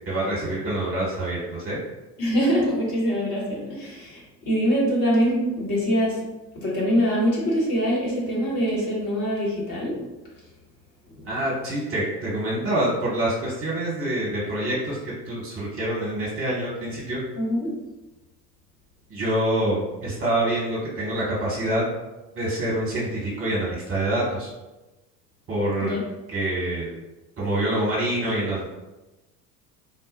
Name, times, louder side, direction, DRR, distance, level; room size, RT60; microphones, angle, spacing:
voice 1, 0.1-1.8 11.3-17.2 19.1-21.9 22.3-24.5 25.5-26.0 26.3-26.9 27.4-28.7, right 1 dB, 25° right, -5 dB, 1.1 m, -26 dB
voice 2, 2.2-6.3 6.5-10.0 11.2-11.3 17.4-17.8 25.8-26.0, equal, 40° left, -5 dB, 1.2 m, -24 dB
3.8 x 2.1 x 2.6 m, 1.1 s
figure-of-eight pair, 70°, 49 cm